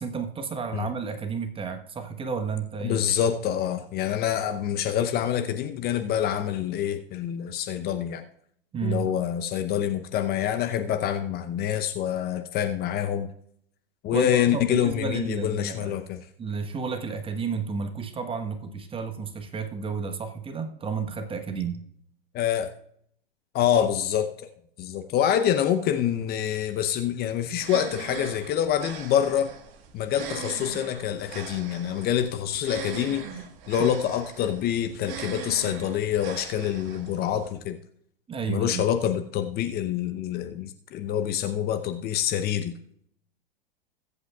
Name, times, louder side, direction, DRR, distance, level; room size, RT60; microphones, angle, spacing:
voice 1, 0.0-3.0 8.7-9.1 14.1-16.0 16.4-21.8 33.8-33.9 38.3-38.8, right 5 dB, 15° right, 6 dB, 1.2 m, -32 dB
voice 2, 2.8-8.2 8.8-13.3 14.0-16.2 22.3-22.7 23.5-24.5 24.8-29.5 29.9-33.3 33.7-37.8 38.5-42.8, left 10 dB, 30° left, 8 dB, 0.8 m, -26 dB
sound 1, 27.5-37.5, right 8 dB, 40° right, 1.8 m, -41 dB
21.5 x 8.1 x 2.4 m, 0.68 s
hypercardioid pair, 100°, 30 cm